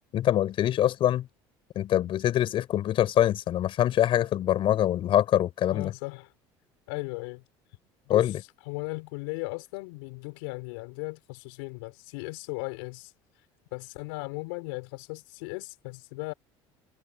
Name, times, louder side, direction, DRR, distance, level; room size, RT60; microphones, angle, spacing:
voice 1, 0.1-1.3 1.8-5.9 8.1-8.4, left 12 dB, 55° left, 5.5 m, -24 dB
voice 2, 5.7-6.3 6.9-7.4 8.1-8.4 8.6-13.1 13.7-16.3, left 28 dB, 90° left, 6.0 m, -37 dB
supercardioid pair, 105°, 11 cm